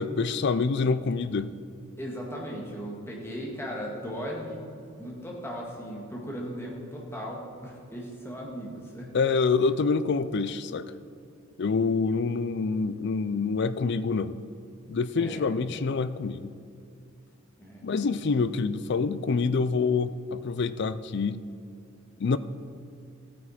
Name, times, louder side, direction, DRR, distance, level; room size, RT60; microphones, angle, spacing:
voice 1, 0.0-1.5 9.1-10.9 11.6-14.4 14.9-16.5 17.8-21.4 22.2-22.4, left 4 dB, 55° left, 14 dB, 0.4 m, -26 dB
voice 2, 2.0-9.1 15.2-15.5 17.6-18.2, equal, 10° left, -3 dB, 1.9 m, -37 dB
14.5 x 9.2 x 4.2 m, 2.5 s
head